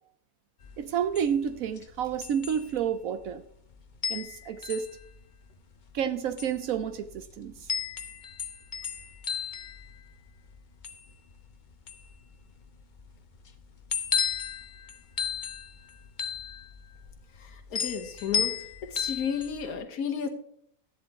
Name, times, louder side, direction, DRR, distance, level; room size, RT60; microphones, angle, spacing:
sound 1, 0.6-19.7, left 7 dB, 40° left, 0.8 m, -35 dB
voice 1, 0.8-3.4 4.1-5.0 5.9-7.7, right 8 dB, 75° right, 1.1 m, -30 dB
voice 2, 17.4-20.3, left 7 dB, 90° left, 1.6 m, -33 dB
13.5 x 10.5 x 3.6 m
omnidirectional pair, 1.5 m